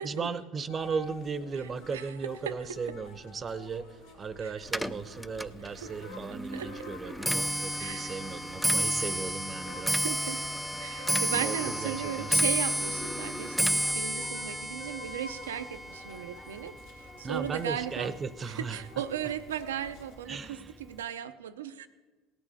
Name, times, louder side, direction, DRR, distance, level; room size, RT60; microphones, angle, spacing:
voice 1, 0.0-10.0 11.3-12.5 17.2-18.8 20.3-20.8, right 5 dB, 35° right, 15 dB, 0.8 m, -36 dB
sound 1, 0.7-20.2, left 2 dB, 85° left, 2.7 m, -49 dB
Clock, 4.7-18.0 18.3-18.8 19.6-19.7 20.0-20.4 20.7-20.8, equal, ahead, 0.5 m, -31 dB
voice 2, 7.8-8.1 9.9-10.4 10.8-18.1 18.5-21.9, right 10 dB, 90° right, 12 dB, 0.6 m, -36 dB
17.5 x 9.0 x 4.2 m, 1.3 s
hypercardioid pair, 75°, 0 cm